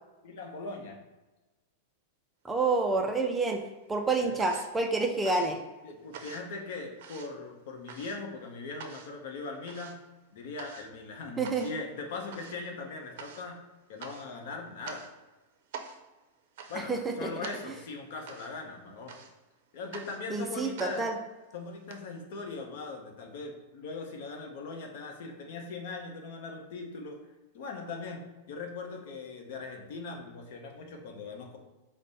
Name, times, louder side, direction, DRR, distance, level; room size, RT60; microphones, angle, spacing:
voice 1, 0.2-1.0 4.2-4.4 5.8-10.0 10.3-13.6 13.9-15.1 16.7-19.1 19.7-21.1 21.5-27.2 27.5-31.6, left 3 dB, 60° left, 3 dB, 0.8 m, -40 dB
voice 2, 2.4-5.6 11.4-11.7 16.7-17.3 17.6-17.7 20.3-21.2, right 3 dB, 10° right, 3 dB, 0.3 m, -29 dB
sound 1, 2.6-3.4 3.7-22.0, right 6 dB, 60° right, 0.5 m, -48 dB
5.2 x 2.1 x 4.0 m, 1.1 s
supercardioid pair, 160°, 0 cm